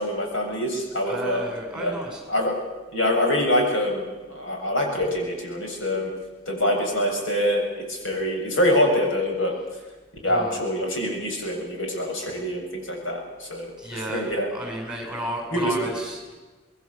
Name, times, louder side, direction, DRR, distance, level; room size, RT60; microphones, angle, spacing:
voice 1, 0.0-1.4 1.8-1.9 2.3-2.5 2.9-6.1 6.5-9.5 10.2-14.5 15.5-15.9, left 1 dB, 80° left, 1 dB, 7.4 m, -25 dB
voice 2, 1.1-2.2 10.3-10.6 13.8-16.3, right 1 dB, 5° right, 1 dB, 6.9 m, -33 dB
27.0 x 20.5 x 7.2 m, 1.3 s
head